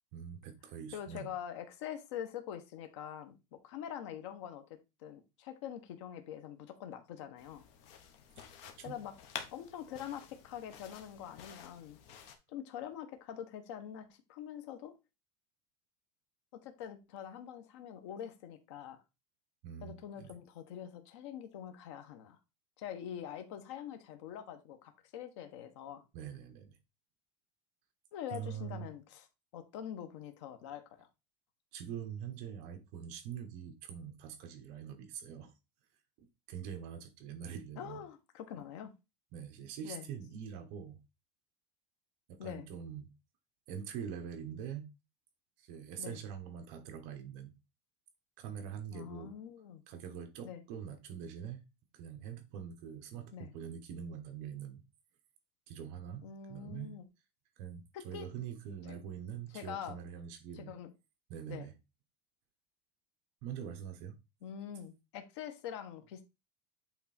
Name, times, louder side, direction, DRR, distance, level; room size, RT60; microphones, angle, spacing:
voice 1, 0.1-1.3 8.8-8.9 19.6-20.3 26.1-26.8 28.3-28.9 31.7-35.5 36.2-38.0 39.3-41.0 42.3-43.1 43.7-44.9 45.6-47.5 48.4-49.3 49.9-51.6 51.9-54.8 55.7-56.9 57.6-60.7 61.3-61.7 63.4-64.2, right 8 dB, 50° right, 1.2 m, -44 dB
voice 2, 0.9-7.6 8.8-9.1 9.5-12.0 12.5-14.9 16.5-19.0 19.8-22.4 22.8-26.0 28.1-29.3 29.5-31.1 37.8-38.9 39.8-40.1 42.4-42.7 46.0-46.2 48.9-49.8 50.4-50.6 53.3-53.5 56.2-57.0 57.9-58.3 58.9-59.0 59.5-60.0 60.5-60.9 61.5-61.7 64.4-66.2, left 9 dB, 80° left, 1.2 m, -45 dB
sound 1, 7.4-12.4, left 8 dB, 50° left, 1.2 m, -50 dB
8.3 x 3.5 x 4.3 m
cardioid pair, 175°, 15 cm